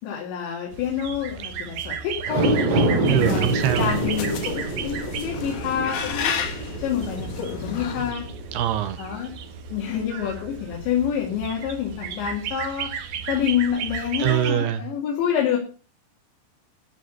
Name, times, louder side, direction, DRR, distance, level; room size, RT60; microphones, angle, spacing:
voice 1, 0.0-2.5 2.8-8.3 9.0-9.3 9.7-15.6, left 8 dB, 90° left, 4.6 m, -28 dB
sound 1, 0.7-14.5, right 7 dB, 65° right, 2.1 m, -35 dB
sound 2, 2.2-8.7 9.1-9.2, right 1 dB, 45° right, 3.3 m, -26 dB
sound 3, 3.0-8.1, left 7 dB, 60° left, 2.1 m, -33 dB
voice 2, 3.0-4.0 8.5-9.0 14.2-14.8, right 11 dB, 80° right, 2.6 m, -23 dB
14.5 x 5.0 x 8.0 m
omnidirectional pair, 5.0 m